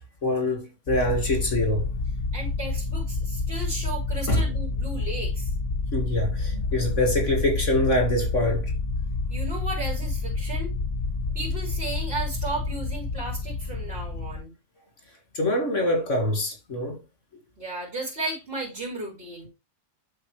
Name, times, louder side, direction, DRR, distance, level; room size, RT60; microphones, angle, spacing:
voice 1, 0.2-1.9 4.3-4.5 5.9-8.7 15.3-17.0, left 1 dB, 90° left, 2.4 m, -25 dB
sound 1, 0.9-14.4, left 3 dB, 45° left, 1.4 m, -29 dB
voice 2, 2.3-5.5 9.3-10.7 11.3-14.5 17.6-19.5, right 2 dB, 55° right, 3.9 m, -34 dB
11.0 x 4.0 x 3.2 m
omnidirectional pair, 1.2 m